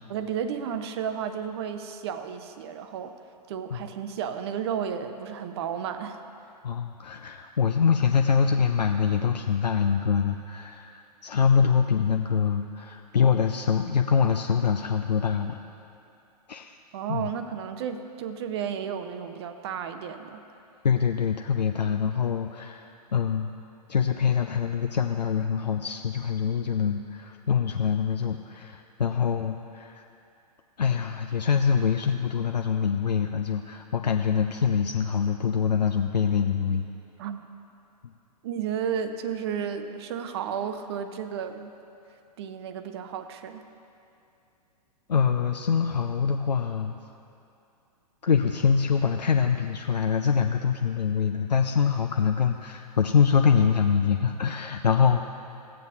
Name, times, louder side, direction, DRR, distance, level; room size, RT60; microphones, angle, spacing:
voice 1, 0.1-3.2 3.5-6.2 16.9-20.4 37.2-37.5 38.4-41.7 42.4-43.7, right 8 dB, 40° right, 9 dB, 0.6 m, -33 dB
voice 2, 6.6-15.6 16.5-16.7 17.1-17.3 20.8-23.5 23.9-30.1 30.8-36.8 38.0-38.1 45.1-47.0 48.2-55.3, left 6 dB, 80° left, 4 dB, 0.4 m, -24 dB
16.0 x 7.6 x 2.7 m, 2.7 s
figure-of-eight pair, 110°, 21 cm